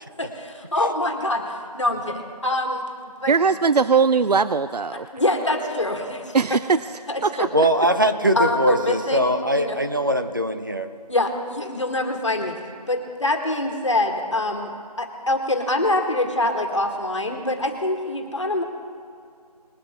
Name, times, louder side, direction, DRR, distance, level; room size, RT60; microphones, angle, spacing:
voice 1, 0.2-2.8 3.2-3.3 5.1-6.6 7.1-7.5 8.3-9.8 11.1-12.6 12.9-14.7 15.0-18.6, left 2 dB, 50° left, 4 dB, 1.9 m, -25 dB
voice 2, 3.3-5.1 6.3-6.9 7.2-7.7, right 5 dB, 80° right, 14 dB, 0.5 m, -20 dB
voice 3, 7.5-10.9, right 1 dB, 30° right, 7 dB, 0.8 m, -21 dB
21.5 x 8.7 x 3.7 m, 2.3 s
figure-of-eight pair, 175°, 20 cm